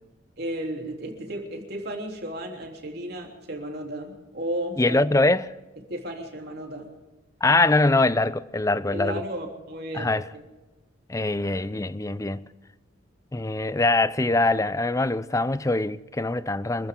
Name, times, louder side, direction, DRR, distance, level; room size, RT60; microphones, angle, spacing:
voice 1, 0.4-5.0 5.8-6.9 8.9-10.2, right 1 dB, 55° right, 3.4 m, -34 dB
voice 2, 4.8-5.5 7.4-9.2 9.9-10.2 11.1-12.4 13.3-16.9, left 2 dB, 15° left, 0.5 m, -23 dB
25.5 x 15.0 x 3.8 m
head